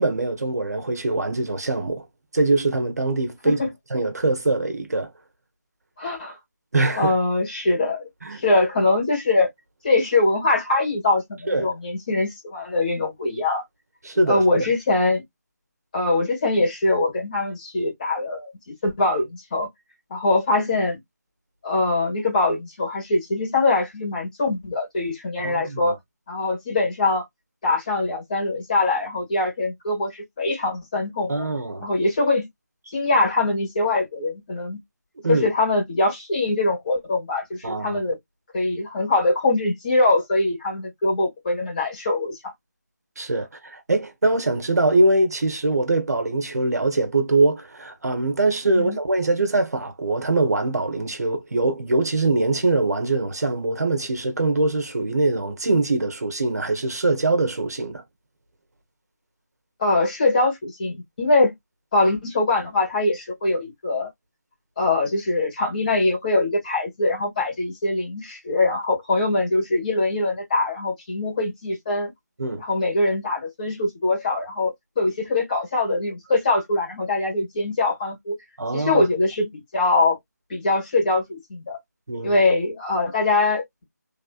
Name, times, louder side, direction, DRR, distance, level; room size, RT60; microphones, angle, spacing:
voice 1, 0.0-2.0 2.3-3.6 3.9-5.1 6.7-7.1 8.2-8.4 11.5-11.7 14.0-14.7 25.4-26.0 31.3-31.9 35.2-35.5 37.6-38.0 43.2-58.0 72.4-72.6 78.6-79.1 82.1-82.4, right 2 dB, 65° right, 1.4 m, -23 dB
voice 2, 6.0-6.4 7.0-8.1 8.4-9.5 9.8-13.6 14.3-15.2 15.9-19.7 20.1-21.0 21.6-26.0 26.3-27.2 27.6-31.5 31.8-32.5 32.9-34.8 35.3-38.2 38.5-42.5 48.7-49.0 59.8-61.5 61.9-64.1 64.8-72.1 72.6-78.4 78.7-80.2 80.5-81.8 82.2-83.8, left 2 dB, 25° left, 2.3 m, -23 dB
3.5 x 3.3 x 2.4 m
figure-of-eight pair, 170°, 10 cm